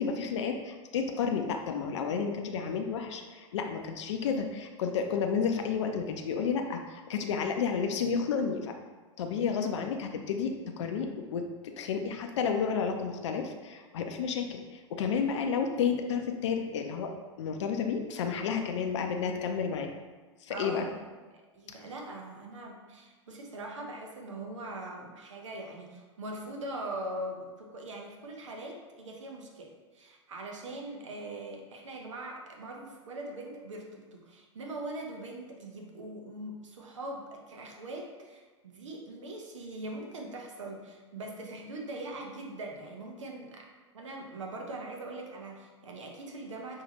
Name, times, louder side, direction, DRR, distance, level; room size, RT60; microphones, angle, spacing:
voice 1, 0.0-8.7 9.2-17.1 17.4-19.9 20.4-20.9 21.7-21.8, left 6 dB, 70° left, 4 dB, 0.5 m, -31 dB
voice 2, 20.5-21.0 21.3-43.7 43.9-46.8, right 1 dB, 80° right, 1 dB, 0.8 m, -41 dB
5.5 x 2.8 x 2.9 m, 1.3 s
hypercardioid pair, 100°, 16 cm